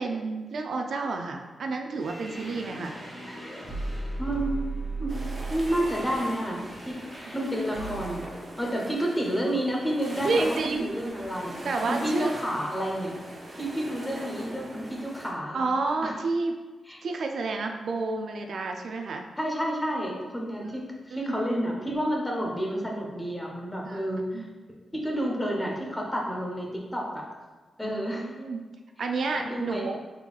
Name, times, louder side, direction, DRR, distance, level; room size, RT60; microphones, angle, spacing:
voice 1, 0.0-3.0 7.3-7.4 7.9-8.0 10.2-10.9 11.6-12.3 15.5-16.6 17.0-19.3 21.1-21.3 23.8-24.0 24.3-24.5 27.8-28.6 29.0-30.0, right 3 dB, 65° right, 3 dB, 0.3 m, -30 dB
sound 1, 1.9-8.3, right 2 dB, 15° right, 1.3 m, -36 dB
voice 2, 4.2-4.6 5.0-7.0 7.3-8.2 8.6-13.1 13.6-15.6 16.0-16.1 16.9-17.0 19.4-24.4 24.9-27.3 27.8-28.2 29.3-29.9, equal, 15° left, -2 dB, 0.8 m, -30 dB
sound 2, 5.1-15.3, right 1 dB, 35° right, 0.7 m, -41 dB
4.3 x 3.8 x 2.4 m, 1.3 s
cardioid pair, 95°, 0 cm